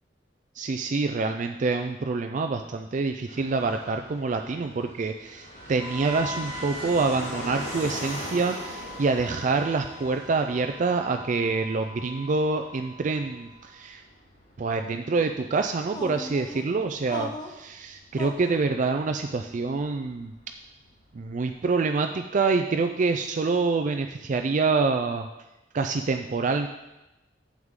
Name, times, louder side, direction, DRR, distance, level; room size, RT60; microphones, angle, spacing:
voice 1, 0.6-14.0 14.6-20.3 21.1-25.3 25.7-26.7, right 4 dB, 45° right, 5 dB, 0.4 m, -26 dB
Fixed-wing aircraft airplane, 3.3-21.6, left 1 dB, 55° left, 3.3 m, -42 dB
Wind instrument woodwind instrument, 5.8-13.7, equal, 10° right, 1.8 m, -42 dB
sound 1, 15.9-16.6 17.1-17.6 18.2-18.6, left 1 dB, 25° left, 0.7 m, -37 dB
9.5 x 7.5 x 3.7 m, 0.97 s
head